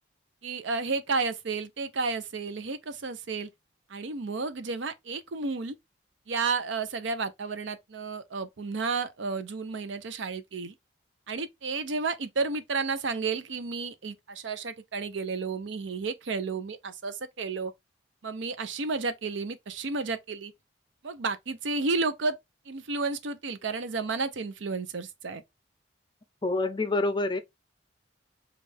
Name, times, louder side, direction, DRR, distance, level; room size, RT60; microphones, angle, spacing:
voice 1, 0.4-3.5 3.9-5.7 6.3-10.7 11.3-17.7 18.2-20.5 21.0-22.4 22.7-25.4, right 4 dB, 75° right, 0.6 m, -32 dB
voice 2, 26.4-27.4, left 2 dB, 25° left, 0.4 m, -27 dB
5.3 x 2.4 x 3.3 m
head